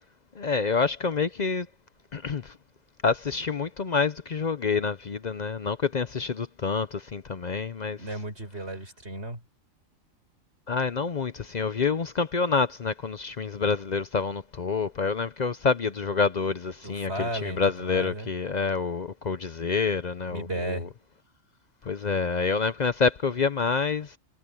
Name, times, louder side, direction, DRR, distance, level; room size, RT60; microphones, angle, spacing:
voice 1, 0.4-1.7 2.1-2.5 3.0-8.0 10.7-20.8 21.9-24.2, left 5 dB, 45° left, 0.6 m, -27 dB
voice 2, 8.0-9.4 16.8-18.3 20.3-20.9, right 1 dB, 50° right, 5.0 m, -34 dB
omnidirectional pair, 1.4 m